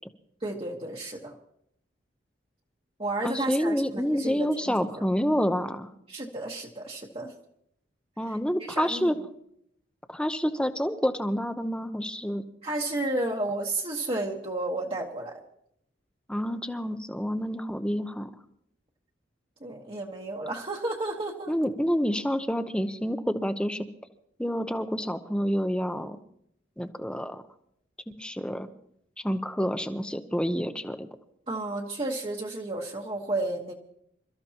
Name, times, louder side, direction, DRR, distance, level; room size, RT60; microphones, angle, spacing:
voice 1, 0.4-1.3 3.0-4.9 6.1-7.3 8.3-9.1 12.6-15.3 19.6-21.5 31.5-33.7, right 2 dB, 30° right, -2 dB, 1.3 m, -32 dB
voice 2, 3.2-5.9 8.2-9.1 10.1-12.4 16.3-18.3 21.5-23.9 24.4-26.2 26.8-27.4 28.2-28.7 29.2-31.1, equal, 5° left, 9 dB, 0.8 m, -28 dB
27.5 x 13.5 x 2.9 m, 0.72 s
head